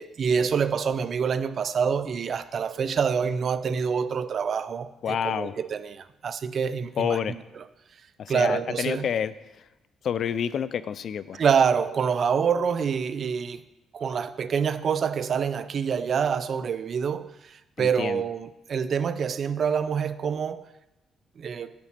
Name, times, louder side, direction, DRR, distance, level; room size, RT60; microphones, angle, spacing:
voice 1, 0.0-7.2 8.3-9.1 11.4-13.6 13.9-20.7 21.4-21.7, right 6 dB, 55° right, 0.5 m, -26 dB
voice 2, 5.0-5.5 7.0-7.4 8.2-9.7 10.0-11.4 17.8-18.2, left 8 dB, 60° left, 0.4 m, -29 dB
10.5 x 4.1 x 7.5 m
cardioid pair, 90°, 0 cm